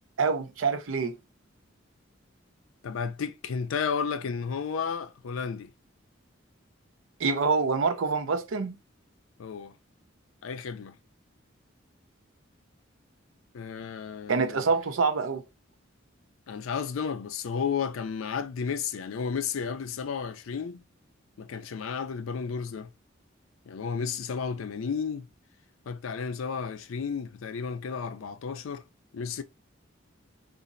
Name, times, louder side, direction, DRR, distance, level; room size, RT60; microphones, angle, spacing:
voice 1, 0.2-1.1 7.2-8.7 14.3-15.4, right 4 dB, 80° right, 0.5 m, -26 dB
voice 2, 2.8-5.7 9.4-9.7 10.4-10.9 13.5-14.7 16.5-20.8 21.4-22.9 23.7-25.3 25.9-28.8 29.1-29.4, left 6 dB, 90° left, 0.4 m, -32 dB
3.9 x 2.4 x 2.5 m
head